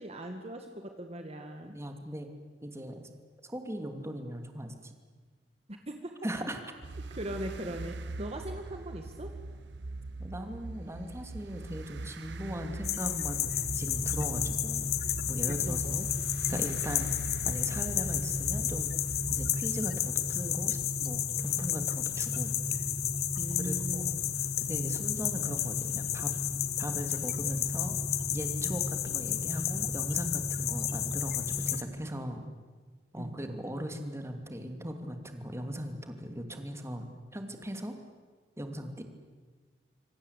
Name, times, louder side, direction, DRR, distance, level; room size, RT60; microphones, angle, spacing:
voice 1, 0.0-1.8 5.7-6.1 7.1-9.3 15.5-16.1 16.5-16.8 23.4-24.3 28.6-28.8 32.4-32.5 33.2-33.3, right 1 dB, 35° right, 5 dB, 1.9 m, -40 dB
voice 2, 1.6-2.3 2.6-3.1 3.4-4.9 6.2-6.6 10.2-16.0 16.5-17.1 17.4-18.9 19.3-22.8 23.6-24.2 24.7-26.3 26.8-28.0 28.3-32.4 33.1-37.9 38.6-39.0, equal, 15° right, 6 dB, 2.8 m, -39 dB
sound 1, 6.8-19.5, right 2 dB, 90° right, 0.9 m, -41 dB
sound 2, 12.8-31.8, left 13 dB, 60° left, 1.5 m, -33 dB
sound 3, 13.4-31.8, left 1 dB, 30° left, 1.5 m, -37 dB
27.0 x 24.0 x 8.4 m, 1.4 s
head